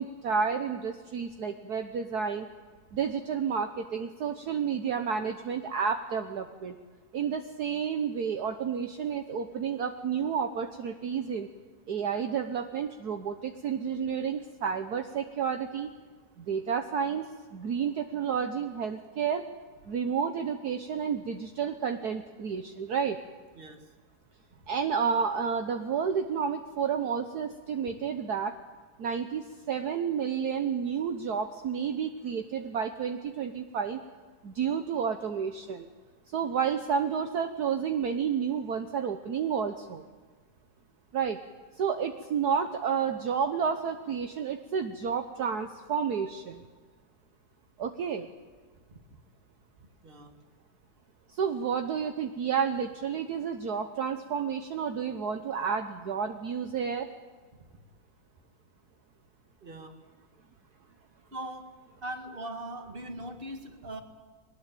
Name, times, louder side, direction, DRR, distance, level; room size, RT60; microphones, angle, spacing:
voice 1, 0.0-2.5 2.9-6.8 7.1-11.5 11.9-15.9 16.4-19.5 19.9-23.2 24.7-28.6 29.0-34.0 34.4-35.9 36.3-40.0 41.1-41.4 41.8-46.6 47.8-48.3 51.3-57.1, right 7 dB, 60° right, 6 dB, 1.5 m, -30 dB
voice 2, 23.5-23.9 48.9-49.0 50.0-50.4 57.6-57.7 59.6-60.0 61.3-64.0, right 1 dB, 30° right, 6 dB, 2.1 m, -41 dB
21.5 x 19.5 x 9.0 m, 1.4 s
omnidirectional pair, 2.0 m